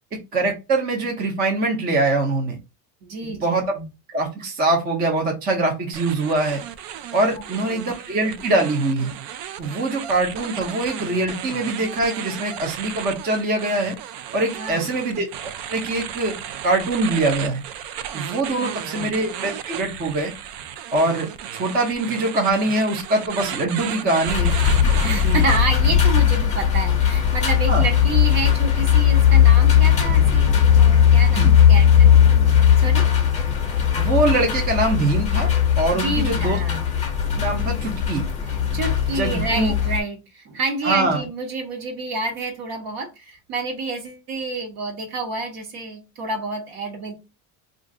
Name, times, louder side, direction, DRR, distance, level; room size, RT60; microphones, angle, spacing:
voice 1, 0.3-2.6 3.2-3.8 4.1-6.6 7.1-9.1 9.6-14.0 14.3-16.4 16.6-17.6 18.1-20.3 20.9-24.5 25.2-25.4 27.7-27.8 31.3-31.5 34.0-35.5 35.8-36.6 37.3-38.2 39.1-39.7 40.8-41.3, right 2 dB, 25° right, 0.5 m, -23 dB
voice 2, 3.0-3.9 7.3-7.4 7.7-7.8 14.6-14.9 18.6-19.1 25.0-30.5 30.8-32.1 32.8-33.1 35.9-36.8 38.5-47.1, right 3 dB, 60° right, 1.2 m, -29 dB
sound 1, 5.9-25.6, right 10 dB, 85° right, 0.5 m, -34 dB
sound 2, 24.3-40.0, left 9 dB, 15° left, 0.7 m, -17 dB
2.5 x 2.4 x 3.6 m
cardioid pair, 155°, 42 cm